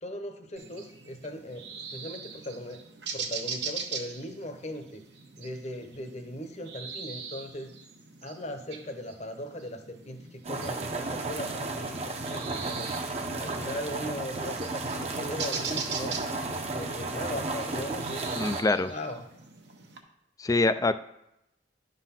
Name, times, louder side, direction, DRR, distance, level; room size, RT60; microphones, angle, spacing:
voice 1, 0.0-2.8 3.1-5.0 5.4-7.7 8.2-12.9 13.4-16.2 16.7-18.5 18.8-19.3, left 1 dB, 40° left, 6 dB, 0.9 m, -39 dB
sound 1, 0.6-20.0, right 6 dB, 70° right, 1.0 m, -41 dB
sound 2, 10.4-18.6, right 2 dB, 35° right, 0.8 m, -33 dB
voice 2, 18.3-18.9 20.4-20.9, left 3 dB, 20° left, 12 dB, 0.3 m, -24 dB
10.5 x 4.0 x 5.8 m, 0.82 s
head